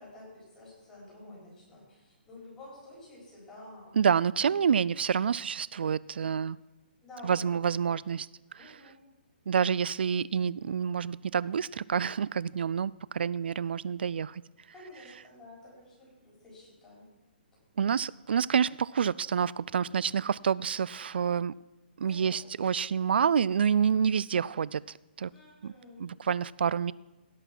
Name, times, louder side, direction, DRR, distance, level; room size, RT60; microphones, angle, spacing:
voice 1, 0.0-4.0 4.6-4.7 7.0-7.6 8.6-9.1 14.7-17.1 22.0-22.4 23.9-24.1 25.3-26.1, left 1 dB, 10° left, -6 dB, 4.3 m, -50 dB
voice 2, 3.9-6.6 7.2-8.3 8.5-8.8 9.5-14.4 17.8-21.5 22.0-24.8 25.2-25.3 25.6-25.7 26.0-26.9, right 7 dB, 70° right, 22 dB, 0.3 m, -28 dB
17.0 x 5.8 x 6.0 m, 1.1 s
hypercardioid pair, 170°, 6 cm